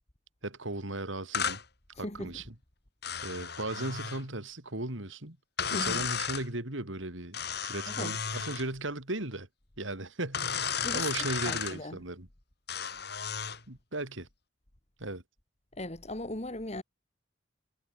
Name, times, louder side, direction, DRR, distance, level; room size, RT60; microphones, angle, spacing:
voice 1, 0.4-1.6 2.0-2.4 3.2-5.4 5.7-9.5 9.8-12.3 13.7-14.3 15.0-15.2, right 2 dB, 75° right, 3.8 m, -37 dB
sound 1, 1.3-1.6 3.0-4.2 5.6-6.5 7.3-8.7 10.3-11.8 12.7-13.6, left 7 dB, 55° left, 6.2 m, -33 dB
voice 2, 2.0-2.4 5.7-6.1 7.9-8.1 10.8-11.1 11.4-12.0 15.8-16.8, left 1 dB, 35° left, 2.0 m, -38 dB
head